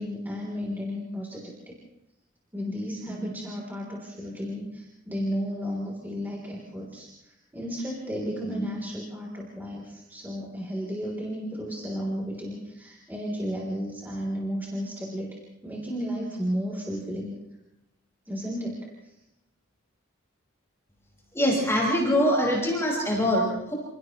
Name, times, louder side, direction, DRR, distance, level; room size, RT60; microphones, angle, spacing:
voice 1, 0.0-1.7 2.5-17.3 18.3-19.1, equal, 10° right, -3 dB, 3.5 m, -33 dB
voice 2, 21.3-23.7, equal, 15° left, -3 dB, 5.5 m, -23 dB
28.5 x 28.5 x 3.2 m, 0.90 s
head